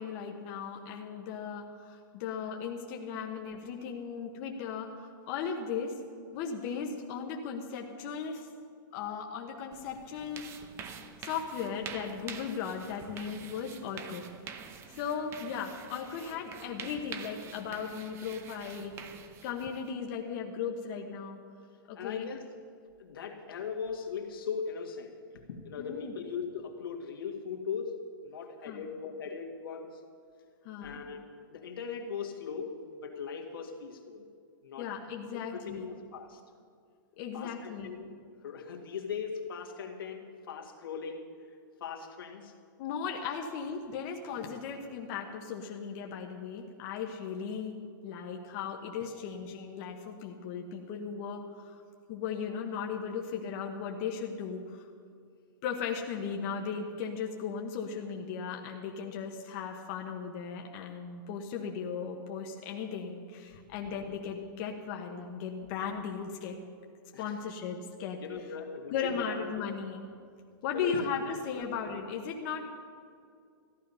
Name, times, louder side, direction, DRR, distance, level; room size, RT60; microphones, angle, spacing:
voice 1, 0.0-5.9 6.3-8.5 8.9-10.6 11.2-14.3 15.0-18.9 19.4-21.4 21.9-22.3 25.8-26.1 28.6-28.8 30.6-31.0 34.8-35.9 37.1-37.9 42.8-47.7 48.0-51.8 52.1-54.9 55.6-66.6 67.2-68.2 68.9-70.0 70.6-72.7, left 6 dB, 40° left, 2 dB, 1.1 m, -37 dB
sound 1, 9.7-19.9, right 7 dB, 20° right, 0.8 m, -46 dB
voice 2, 22.0-22.4 23.0-30.0 30.8-34.2 34.6-34.9 35.3-36.4 37.3-38.1 38.4-41.3 41.8-42.5 58.5-58.6 58.9-59.2 67.1-67.3 68.2-69.7 70.7-71.0 71.5-71.7, left 6 dB, 85° left, 2 dB, 1.9 m, -39 dB
14.5 x 11.5 x 5.5 m, 2.2 s
hypercardioid pair, 155°, 12 cm